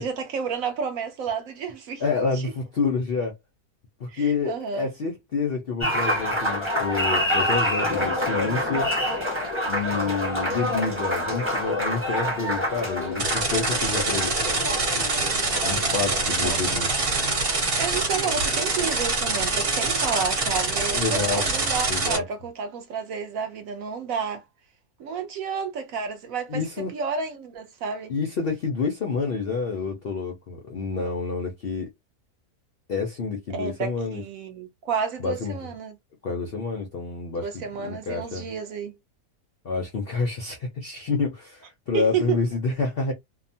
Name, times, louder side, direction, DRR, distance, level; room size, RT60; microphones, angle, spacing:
voice 1, 0.0-2.0 2.3-2.5 4.1-4.9 15.5-16.7 17.8-24.4 25.0-28.1 33.5-36.0 37.4-39.0 41.9-42.4, right 6 dB, 70° right, 0.8 m, -31 dB
voice 2, 2.0-3.4 4.0-8.9 9.7-14.7 15.0-15.1 15.6-16.9 18.2-18.3 20.9-21.4 21.8-22.2 26.5-26.9 28.1-31.9 32.9-34.2 35.2-35.6 36.2-38.5 39.6-43.1, left 4 dB, 70° left, 0.5 m, -28 dB
Applause, 5.8-17.6, left 1 dB, 10° right, 0.8 m, -27 dB
sound 1, 13.2-22.2, right 3 dB, 40° right, 1.1 m, -25 dB
2.8 x 2.1 x 2.6 m
omnidirectional pair, 1.7 m